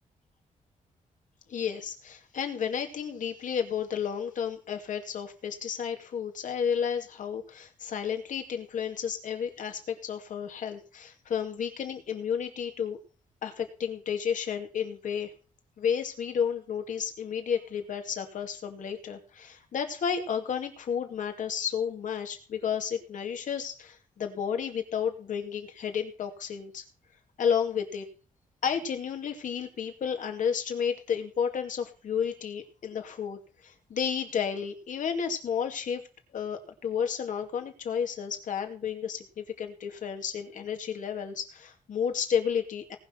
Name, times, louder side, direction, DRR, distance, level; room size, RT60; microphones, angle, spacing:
voice 1, 1.5-13.0 13.4-15.3 15.8-26.8 27.4-28.1 28.6-36.0 36.3-43.0, left 7 dB, 65° left, 5 dB, 2.4 m, -32 dB
18.5 x 6.2 x 5.7 m, 0.37 s
wide cardioid pair, 140°, 14 cm